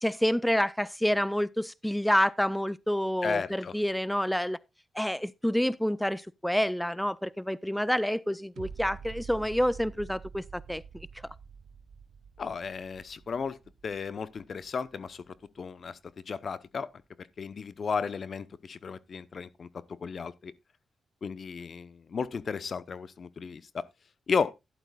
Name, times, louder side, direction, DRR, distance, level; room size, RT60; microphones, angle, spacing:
voice 1, 0.0-4.6 4.9-11.1, equal, 5° left, 0.4 m, -28 dB
voice 2, 3.2-3.7 12.4-13.6 13.8-16.0 16.3-16.9 17.2-19.7 20.0-20.5 21.2-23.9 24.3-24.5, left 5 dB, 55° left, 0.8 m, -34 dB
sound 1, 8.6-15.6 16.1-16.2, right 6 dB, 75° right, 1.0 m, -47 dB
12.0 x 11.0 x 2.3 m
supercardioid pair, 55°, 0 cm